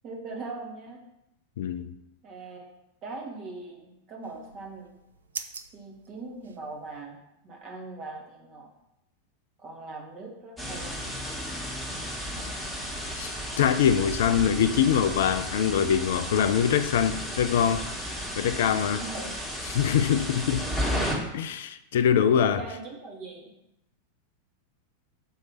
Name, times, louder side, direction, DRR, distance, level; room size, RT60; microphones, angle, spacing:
voice 1, 0.0-1.0 2.2-2.6 3.0-4.9 5.7-7.2 7.4-8.7 9.6-11.0 19.0-19.3 22.4-23.5, right 3 dB, 35° right, 1.6 m, -40 dB
voice 2, 1.6-1.9 13.1-19.0 19.7-20.7 21.3-22.6, left 8 dB, 55° left, 0.3 m, -24 dB
sound 1, 4.2-7.0, right 5 dB, 70° right, 0.4 m, -44 dB
sound 2, 10.6-21.1, equal, ahead, 1.7 m, -33 dB
6.2 x 3.2 x 5.6 m
figure-of-eight pair, 90°, 0 cm